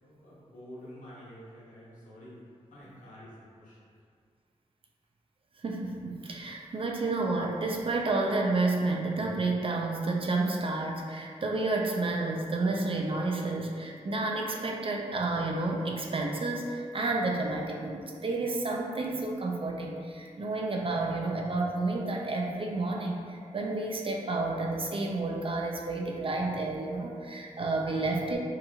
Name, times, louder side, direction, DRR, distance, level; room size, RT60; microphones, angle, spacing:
voice 1, 0.0-2.4 2.7-4.0, equal, 80° left, -9 dB, 1.0 m, -49 dB
voice 2, 5.6-28.4, right 2 dB, 45° right, 0 dB, 0.4 m, -30 dB
2.8 x 2.7 x 2.3 m, 2.1 s
cardioid pair, 55°, 13 cm